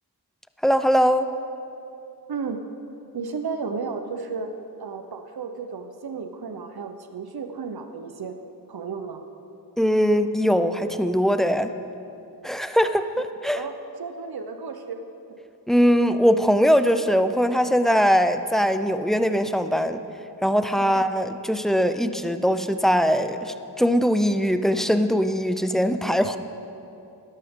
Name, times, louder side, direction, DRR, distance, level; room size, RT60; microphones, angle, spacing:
voice 1, 0.6-1.3 9.8-11.7 12.4-13.6 15.7-20.0 20.4-26.4, equal, ahead, 10 dB, 0.5 m, -21 dB
voice 2, 2.3-2.6 3.1-4.5 4.8-8.4 8.7-9.2 13.6-15.0 15.3-15.4 20.8-20.9, right 5 dB, 70° right, 7 dB, 0.7 m, -33 dB
12.5 x 12.0 x 3.6 m, 2.8 s
wide cardioid pair, 45°, 39 cm